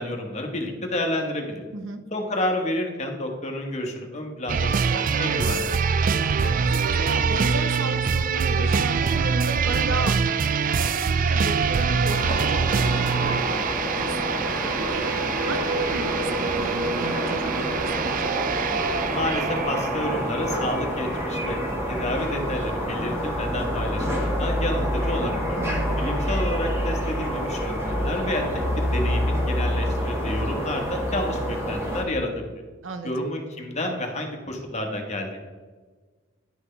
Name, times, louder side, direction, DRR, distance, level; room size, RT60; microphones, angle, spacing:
voice 1, 0.0-1.6 2.1-5.7 19.1-21.6 21.9-25.6 26.0-28.4 28.8-32.4 33.0-35.4, left 1 dB, 35° left, 2 dB, 1.3 m, -30 dB
sound 1, 4.5-20.5 20.8-20.9, right 5 dB, 45° right, 0.3 m, -24 dB
voice 2, 6.1-18.4 25.6-26.0 32.8-33.1, right 2 dB, 80° right, 8 dB, 0.8 m, -35 dB
sound 2, 12.1-32.0, equal, 15° right, 1.7 m, -27 dB
10.5 x 6.0 x 3.3 m, 1.4 s
head